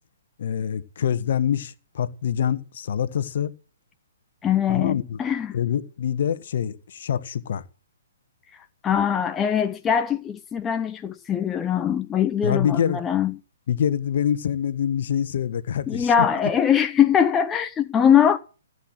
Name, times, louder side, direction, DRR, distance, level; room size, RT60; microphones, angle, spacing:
voice 1, 0.4-3.5 4.7-5.2 5.5-7.6 12.4-13.0 13.7-16.1, left 9 dB, 55° left, 1.4 m, -25 dB
voice 2, 4.4-5.6 8.5-13.4 15.9-18.4, left 8 dB, 15° left, 0.9 m, -22 dB
15.5 x 8.3 x 8.9 m
figure-of-eight pair, 125°, 0 cm